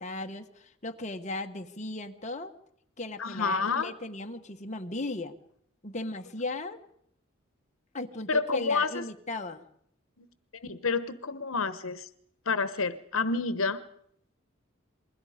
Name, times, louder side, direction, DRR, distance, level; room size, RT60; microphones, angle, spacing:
voice 1, 0.0-2.5 3.0-5.4 5.8-6.8 7.9-9.6, left 2 dB, 35° left, 5 dB, 1.3 m, -36 dB
voice 2, 3.2-3.9 8.3-9.0 10.2-10.3 10.5-12.1 12.5-13.8, left 4 dB, 85° left, 13 dB, 1.1 m, -29 dB
28.0 x 21.5 x 5.0 m, 0.69 s
head